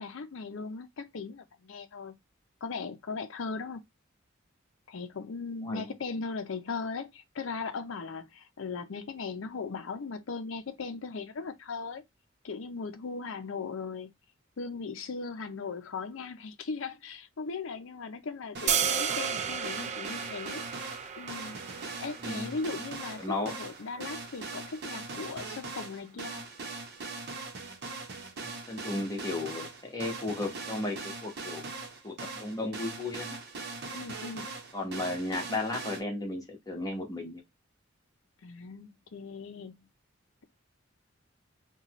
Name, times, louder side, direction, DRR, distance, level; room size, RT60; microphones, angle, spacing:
voice 1, 0.0-2.2 2.6-3.8 4.9-12.0 12.4-14.1 14.6-20.7 21.2-21.6 22.0-26.5 33.9-34.5 38.4-39.9, left 4 dB, 70° left, 0.5 m, -38 dB
sound 1, 18.5-36.0, right 3 dB, 55° right, 0.8 m, -41 dB
sound 2, 18.7-24.8, right 8 dB, 35° right, 0.3 m, -34 dB
voice 2, 22.2-22.6 23.2-23.5 28.4-31.7 32.0-33.4 34.7-37.4, left 2 dB, 20° left, 1.1 m, -35 dB
4.0 x 2.3 x 2.9 m
head